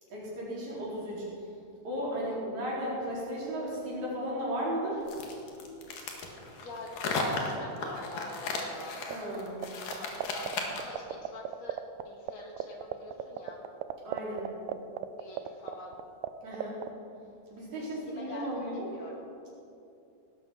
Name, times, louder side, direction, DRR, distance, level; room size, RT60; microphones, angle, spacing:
voice 1, 0.1-1.3 1.8-5.0 9.1-9.6 14.0-14.5 16.4-16.8 17.5-18.9, equal, 55° right, -6 dB, 5.6 m, -35 dB
sound 1, 5.1-11.0, left 3 dB, 75° left, 3.4 m, -35 dB
voice 2, 6.6-9.1 9.8-13.7 15.2-16.0 17.7-19.3, left 2 dB, 55° left, -1 dB, 3.3 m, -45 dB
sound 2, 9.1-9.6 9.9-12.0 12.3-12.4 12.6-16.3 16.5-16.9, right 13 dB, 85° right, 2.3 m, -34 dB
18.0 x 12.5 x 5.9 m, 2.7 s
omnidirectional pair, 3.9 m